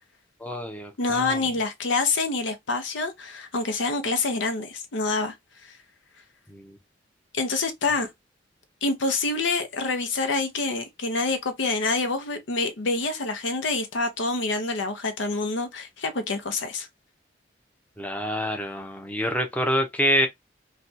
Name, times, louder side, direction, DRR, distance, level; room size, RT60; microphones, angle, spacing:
voice 1, 0.4-1.4 6.5-6.8 18.0-20.3, equal, 10° left, 0.6 m, -26 dB
voice 2, 1.0-5.3 5.6-5.8 7.3-8.1 8.8-16.9, left 3 dB, 85° left, 0.7 m, -27 dB
3.2 x 2.3 x 2.7 m
head